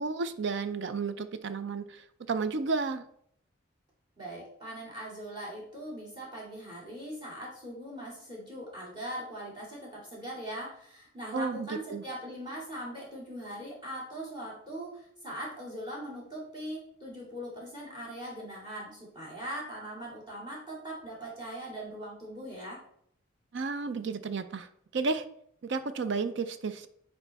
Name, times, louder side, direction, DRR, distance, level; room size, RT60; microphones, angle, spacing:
voice 1, 0.0-3.0 11.3-12.0 23.5-25.3 25.6-26.9, right 4 dB, 55° right, 11 dB, 0.4 m, -32 dB
voice 2, 4.2-22.8, right 1 dB, 20° right, -4 dB, 2.4 m, -41 dB
9.9 x 4.1 x 3.4 m, 0.68 s
head